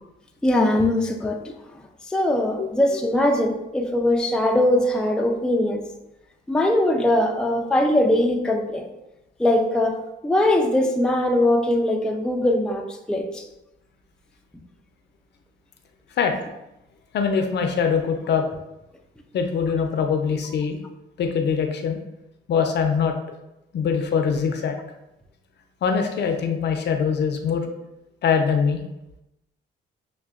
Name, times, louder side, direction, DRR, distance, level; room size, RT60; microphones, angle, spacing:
voice 1, 0.4-1.4 2.1-5.8 6.5-8.8 9.4-10.0 10.2-13.4, left 1 dB, 5° left, 2 dB, 0.4 m, -21 dB
voice 2, 17.1-18.4 19.3-20.8 21.2-22.0 22.5-23.1 23.7-24.8 25.8-27.7 28.2-28.8, left 6 dB, 60° left, 5 dB, 0.6 m, -22 dB
6.5 x 2.2 x 2.4 m, 0.91 s
cardioid pair, 90°, 20 cm